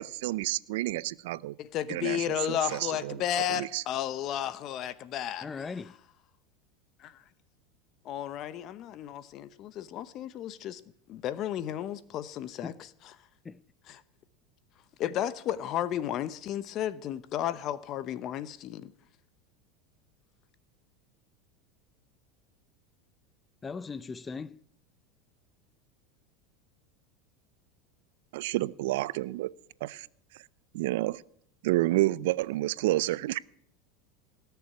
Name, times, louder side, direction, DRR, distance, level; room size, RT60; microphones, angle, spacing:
voice 1, 0.0-1.6 1.9-3.2 3.5-3.8 28.3-29.5 29.8-30.1 30.7-31.2 31.6-33.4, right 17 dB, 75° right, 0.5 m, -29 dB
voice 2, 1.6-5.5 7.0-7.1 8.0-10.8 11.1-12.7 13.9-14.0 15.0-18.9, left 11 dB, 45° left, 0.9 m, -33 dB
voice 3, 5.4-6.0 12.6-12.7 13.4-13.6 23.6-24.6, left 5 dB, 20° left, 0.5 m, -38 dB
18.0 x 6.9 x 9.5 m
supercardioid pair, 110°, 0 cm